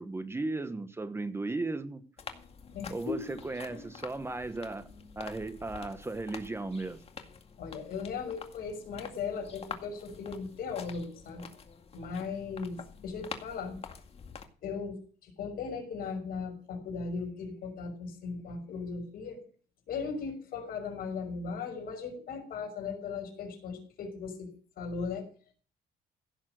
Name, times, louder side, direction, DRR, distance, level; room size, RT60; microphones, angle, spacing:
voice 1, 0.0-2.0 2.9-4.9 5.2-7.0, right 2 dB, 15° right, 10 dB, 1.2 m, -36 dB
sound 1, 2.2-14.4, left 6 dB, 35° left, 2.1 m, -47 dB
voice 2, 2.7-3.3 3.7-3.9 7.6-11.5 11.9-13.8 14.6-19.4 19.9-24.5 24.8-25.3, left 5 dB, 60° left, 3 dB, 5.9 m, -37 dB
16.5 x 7.3 x 6.5 m, 0.42 s
cardioid pair, 110°, 17 cm